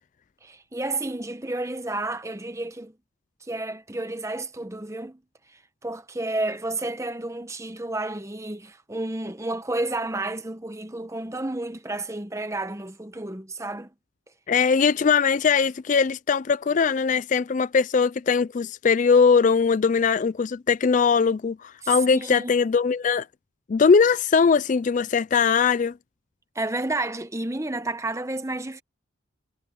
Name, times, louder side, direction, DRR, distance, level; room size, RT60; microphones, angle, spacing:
voice 1, 0.4-2.9 3.5-5.2 5.8-13.9 21.8-22.5 26.5-28.8, right 2 dB, 15° right, 1.0 m, -31 dB
voice 2, 14.5-23.3 23.7-25.9, left 5 dB, 40° left, 0.3 m, -20 dB
head